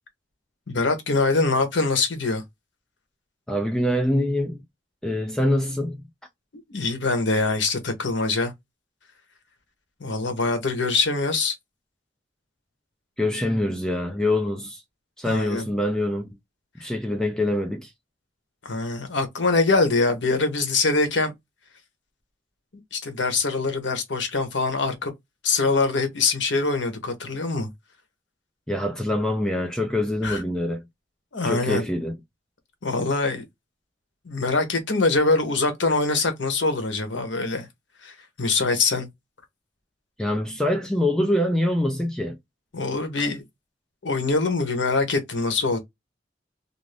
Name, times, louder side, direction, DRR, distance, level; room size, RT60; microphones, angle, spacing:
voice 1, 0.7-2.4 6.7-8.5 10.0-11.5 15.2-15.7 18.6-21.3 22.9-25.1 25.4-27.7 30.2-30.4 31.3-31.9 32.8-33.4 34.2-37.7 38.0-39.1 42.7-43.4 44.0-45.8, left 3 dB, 75° left, 0.9 m, -23 dB
voice 2, 3.5-4.6 5.0-6.0 13.2-14.8 15.2-16.3 16.8-17.9 28.7-30.8 31.4-32.2 40.2-42.4, left 1 dB, 5° left, 0.4 m, -24 dB
2.5 x 2.4 x 3.2 m
head